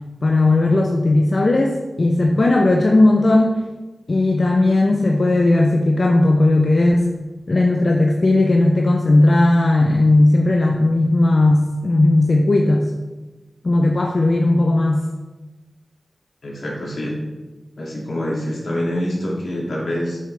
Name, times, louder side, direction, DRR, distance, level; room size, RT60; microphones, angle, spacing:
voice 1, 0.2-3.6 4.1-7.1 7.5-12.9 13.6-15.0, left 2 dB, 55° left, 1 dB, 0.7 m, -16 dB
voice 2, 16.4-17.1 17.8-20.2, left 1 dB, 80° left, -4 dB, 2.4 m, -25 dB
8.8 x 6.6 x 3.4 m, 1.2 s
wide cardioid pair, 70°, 0 cm